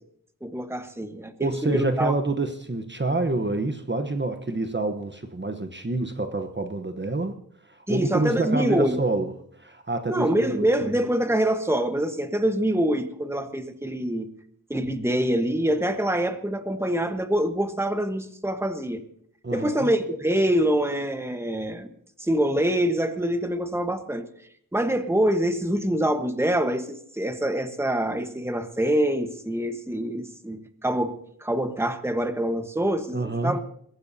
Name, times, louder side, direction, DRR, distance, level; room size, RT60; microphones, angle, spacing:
voice 1, 0.4-2.1 7.9-9.0 10.1-14.3 14.7-19.0 19.5-21.9 22.2-24.3 24.7-33.6, right 1 dB, 5° right, 8 dB, 1.2 m, -25 dB
voice 2, 1.4-7.4 7.6-10.9 19.4-19.9 33.1-33.6, right 2 dB, 30° right, 7 dB, 1.0 m, -27 dB
22.0 x 15.0 x 2.8 m, 0.67 s
wide cardioid pair, 70°, 34 cm